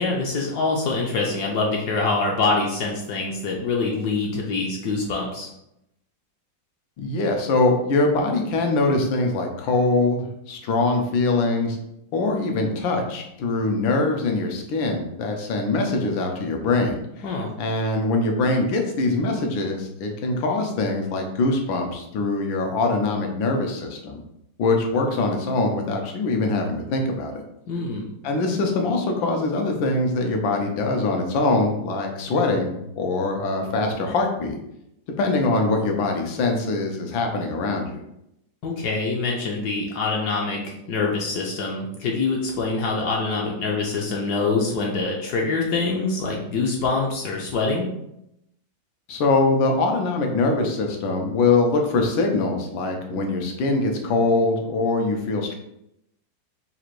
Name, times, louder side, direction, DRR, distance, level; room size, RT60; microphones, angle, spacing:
voice 1, 0.0-5.5 17.2-17.5 27.7-28.1 38.6-47.9, left 3 dB, 70° left, -1 dB, 1.1 m, -25 dB
voice 2, 7.0-11.8 12.1-17.0 17.6-24.2 24.6-27.4 28.2-34.5 35.2-38.0 49.1-55.5, left 3 dB, 85° left, 2 dB, 1.5 m, -23 dB
3.9 x 2.5 x 4.5 m, 0.81 s
omnidirectional pair, 2.1 m